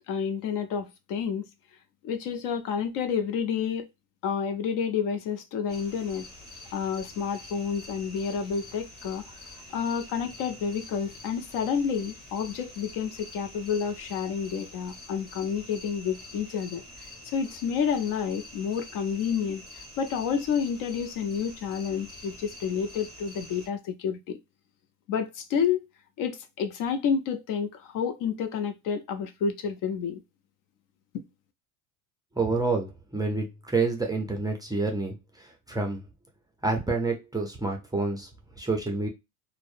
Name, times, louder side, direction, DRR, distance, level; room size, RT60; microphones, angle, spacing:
voice 1, 0.1-1.4 2.0-3.9 4.2-6.3 6.7-9.2 9.7-16.8 17.2-24.4 25.1-25.8 26.2-30.2 31.1-31.2, left 7 dB, 50° left, 0.5 m, -29 dB
sound 1, 5.7-23.7, left 1 dB, 20° left, 1.5 m, -46 dB
voice 2, 32.4-36.1 36.6-39.1, right 3 dB, 10° right, 0.4 m, -28 dB
2.6 x 2.1 x 2.4 m
supercardioid pair, 95°, 44 cm